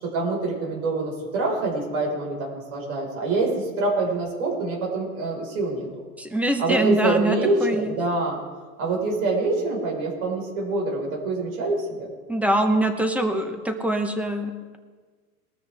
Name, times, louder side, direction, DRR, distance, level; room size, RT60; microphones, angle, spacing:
voice 1, 0.0-5.9 6.6-8.4 8.8-12.1, right 2 dB, 65° right, -1 dB, 5.0 m, -25 dB
voice 2, 6.2-7.9 12.3-14.8, right 1 dB, 5° right, 6 dB, 0.9 m, -24 dB
21.0 x 13.0 x 3.5 m, 1.4 s
supercardioid pair, 140°, 46 cm